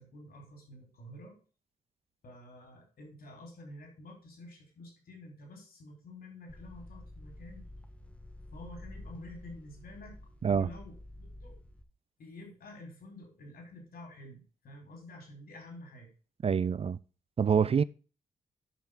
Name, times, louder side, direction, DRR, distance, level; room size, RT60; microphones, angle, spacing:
voice 1, 0.0-1.4 2.2-7.7 8.5-11.5 12.2-16.1, left 1 dB, 65° left, 4.7 m, -49 dB
sound 1, 6.5-11.8, left 1 dB, 5° left, 1.4 m, -49 dB
voice 2, 16.4-17.0 17.4-17.8, right 7 dB, 35° right, 0.4 m, -26 dB
10.5 x 5.7 x 3.7 m
hypercardioid pair, 45°, 17 cm